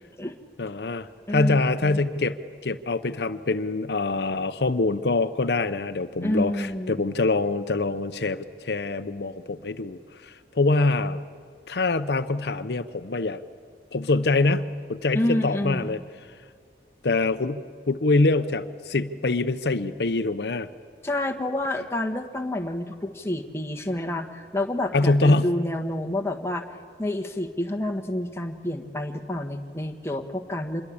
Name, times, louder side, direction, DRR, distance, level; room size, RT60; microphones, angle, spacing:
voice 1, 0.6-2.3 2.6-11.2 11.7-13.4 13.9-16.0 17.0-20.7 24.9-25.5, left 3 dB, 70° left, 11 dB, 0.8 m, -24 dB
voice 2, 1.3-2.0 6.2-7.0 15.1-16.0 21.0-26.6 27.0-30.8, left 1 dB, 15° left, 4 dB, 1.4 m, -29 dB
26.5 x 21.5 x 8.7 m, 2.2 s
head